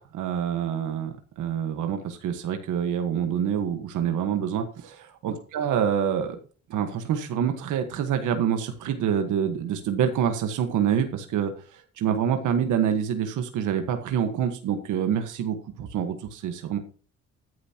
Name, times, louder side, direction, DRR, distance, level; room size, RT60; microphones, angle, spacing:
voice 1, 0.0-6.4 6.7-16.8, right 8 dB, 80° right, 6 dB, 1.5 m, -26 dB
14.5 x 9.5 x 2.9 m, 0.39 s
cardioid pair, 90°, 30 cm